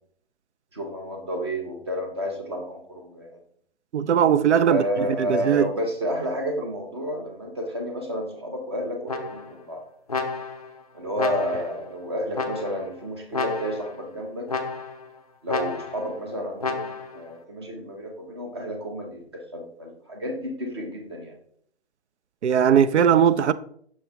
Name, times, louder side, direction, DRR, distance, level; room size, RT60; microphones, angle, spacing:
voice 1, 0.7-3.4 4.7-9.8 10.9-14.5 15.4-21.3, equal, 25° right, 0.8 m, -31 dB
voice 2, 3.9-4.8 5.1-5.7 22.4-23.5, right 8 dB, 85° right, 0.5 m, -19 dB
sound 1, 9.1-9.6 10.1-10.7 11.2-11.8 12.3-12.9 13.3-14.0 14.5-15.1 15.5-16.1 16.6-17.2, left 4 dB, 35° left, 0.4 m, -31 dB
6.0 x 4.5 x 3.4 m
hypercardioid pair, 175°, 34 cm